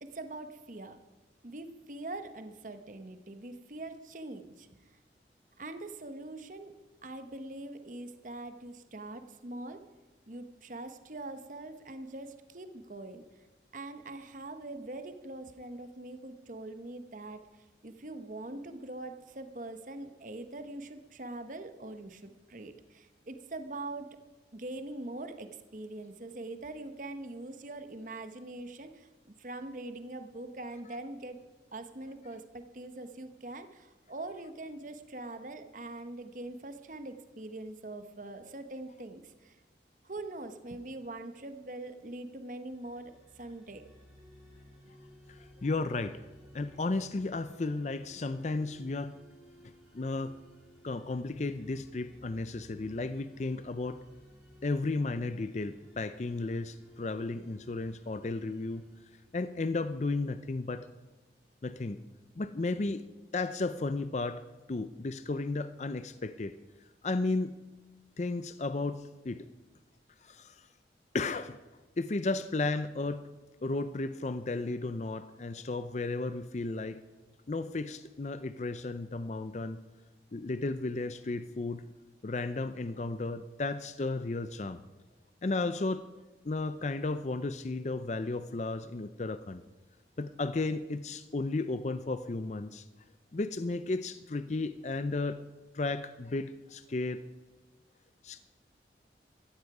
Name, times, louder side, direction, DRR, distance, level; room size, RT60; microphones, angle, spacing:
voice 1, 0.0-1.0 1.4-4.7 5.6-6.7 7.0-9.8 10.3-13.2 13.7-24.2 24.5-39.6 40.0-43.8, right 2 dB, 45° right, 8 dB, 1.0 m, -43 dB
sound 1, 42.7-59.8, equal, ahead, 4.5 m, -57 dB
voice 2, 45.3-46.3 46.5-49.2 49.9-50.3 50.8-54.0 54.6-58.8 59.3-60.9 61.6-62.0 62.4-63.0 63.3-64.4 64.7-66.5 67.0-67.6 68.2-69.5 70.2-70.6 71.1-71.6 72.0-73.2 73.6-77.0 77.5-79.8 80.3-81.8 82.2-84.8 85.4-86.1 86.4-89.6 90.2-92.8 93.3-95.4 95.7-97.2 98.2-98.4, left 3 dB, 40° left, 12 dB, 0.5 m, -34 dB
14.5 x 14.5 x 4.9 m, 1.2 s
head